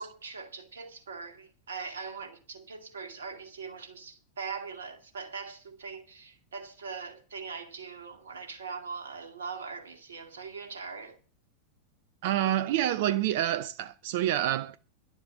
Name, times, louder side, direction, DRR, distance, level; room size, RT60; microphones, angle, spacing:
voice 1, 0.0-11.2, right 5 dB, 65° right, 2.3 m, -41 dB
voice 2, 12.2-14.8, right 12 dB, 50° right, 0.6 m, -27 dB
11.5 x 7.2 x 9.1 m
figure-of-eight pair, 90°, 0 cm